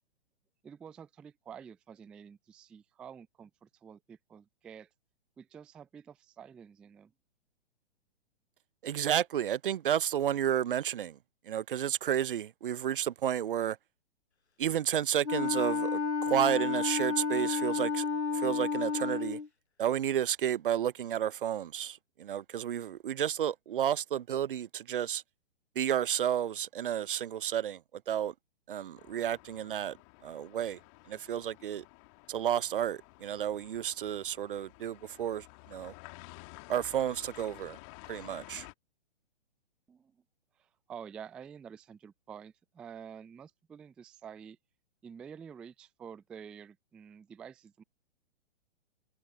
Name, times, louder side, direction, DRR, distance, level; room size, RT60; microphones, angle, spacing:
voice 1, 0.6-4.9 5.4-7.1 39.9-40.2 40.6-44.6 45.0-47.8, right 7 dB, 5° right, 0.4 m, -49 dB
voice 2, 8.8-11.2 11.5-13.8 14.6-18.1 18.3-19.4 19.8-25.2 25.8-27.8 28.1-28.3 28.7-30.0 30.2-30.8 31.1-31.8 32.3-35.9 36.7-37.8 38.1-38.7, right 10 dB, 55° right, 0.6 m, -31 dB
Wind instrument woodwind instrument, 15.2-19.5, left 4 dB, 85° left, 0.9 m, -31 dB
sound 1, 29.0-38.7, left 32 dB, 30° left, 2.5 m, -53 dB
figure-of-eight pair, 120°, 32 cm